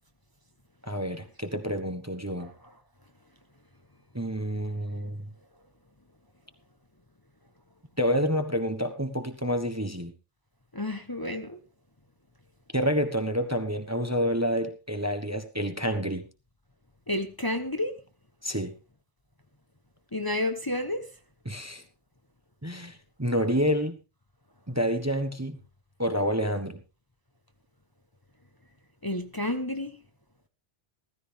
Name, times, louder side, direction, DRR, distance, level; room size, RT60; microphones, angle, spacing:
voice 1, 0.8-2.5 4.1-5.3 8.0-10.1 12.7-16.2 18.4-18.7 21.4-21.8 22.6-24.0 24.7-25.6 26.0-26.8, equal, 15° right, 1.2 m, -28 dB
voice 2, 10.7-11.6 17.1-18.0 20.1-21.1 29.0-30.0, left 1 dB, 20° left, 1.2 m, -30 dB
15.0 x 14.5 x 3.5 m
omnidirectional pair, 1.2 m